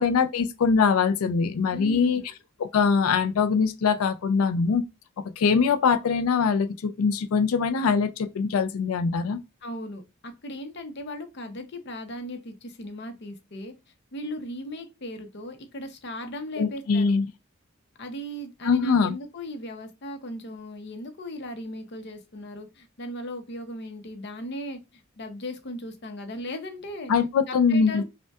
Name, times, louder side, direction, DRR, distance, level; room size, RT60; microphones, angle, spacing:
voice 1, 0.0-2.2 2.6-4.8 5.4-9.4 16.6-17.3 18.6-19.1 27.1-28.0, left 5 dB, 90° left, 0.4 m, -23 dB
voice 2, 1.7-2.3 9.6-13.7 14.1-17.2 18.0-27.1 27.5-28.0, equal, 55° left, 0.7 m, -37 dB
5.2 x 2.2 x 2.3 m
head